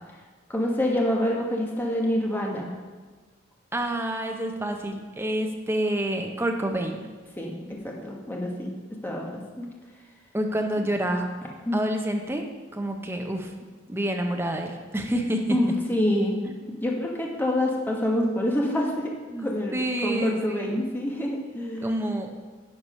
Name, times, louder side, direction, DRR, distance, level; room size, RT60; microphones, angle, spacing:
voice 1, 0.5-2.7 7.4-9.7 11.7-11.8 15.5-19.7 20.0-21.9, left 1 dB, 10° left, -2 dB, 1.2 m, -27 dB
voice 2, 3.7-7.1 10.3-11.3 11.7-12.4 12.7-13.5 13.9-15.6 19.3-20.7 21.8-22.4, right 1 dB, 10° right, 3 dB, 0.7 m, -28 dB
9.8 x 4.8 x 5.6 m, 1.4 s
head